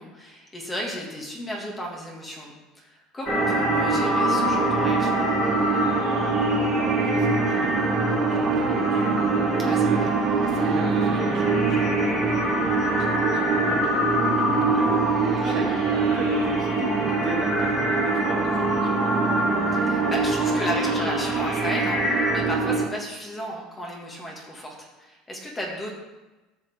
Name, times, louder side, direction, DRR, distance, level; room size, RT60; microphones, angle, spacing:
voice 1, 0.0-5.6 9.6-10.1 15.4-15.6 19.7-25.9, equal, 15° left, -1 dB, 1.9 m, -34 dB
sound 1, 3.3-22.4, left 2 dB, 45° left, 2.5 m, -29 dB
sound 2, 3.3-22.9, right 4 dB, 25° right, 1.9 m, -24 dB
voice 2, 6.8-9.1 9.5-11.9 12.3-19.2, right 3 dB, 45° right, -1 dB, 2.1 m, -36 dB
13.5 x 6.0 x 3.5 m, 1.1 s
cardioid pair, 135°, 0 cm